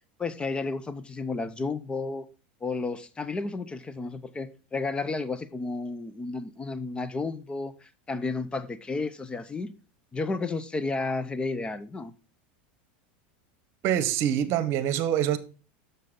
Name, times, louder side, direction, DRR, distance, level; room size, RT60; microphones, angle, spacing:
voice 1, 0.2-2.3 2.6-9.7 10.1-12.1, left 3 dB, 15° left, 0.6 m, -32 dB
voice 2, 13.8-15.4, right 10 dB, 50° right, 1.0 m, -25 dB
7.5 x 6.6 x 3.7 m
supercardioid pair, 115°, 6 cm